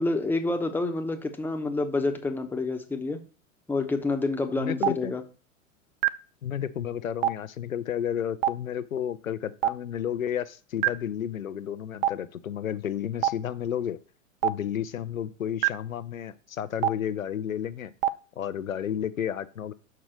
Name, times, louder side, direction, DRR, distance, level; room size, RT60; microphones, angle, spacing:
voice 1, 0.0-3.2 3.7-5.2, left 3 dB, 5° left, 4 dB, 1.0 m, -28 dB
voice 2, 4.6-5.1 6.4-14.0 14.4-17.9 18.4-19.7, left 9 dB, 85° left, 12 dB, 0.7 m, -32 dB
Stream, 4.8-4.9 6.0-6.1 7.2-7.3 8.4-8.5 9.6-9.7 10.8-10.9 12.0-12.1 13.2-13.3 14.4-14.5 15.6-15.7 16.8-16.9 18.0-18.1, right 11 dB, 40° right, 0.5 m, -23 dB
6.0 x 4.7 x 6.4 m, 0.36 s
figure-of-eight pair, 100°, 39 cm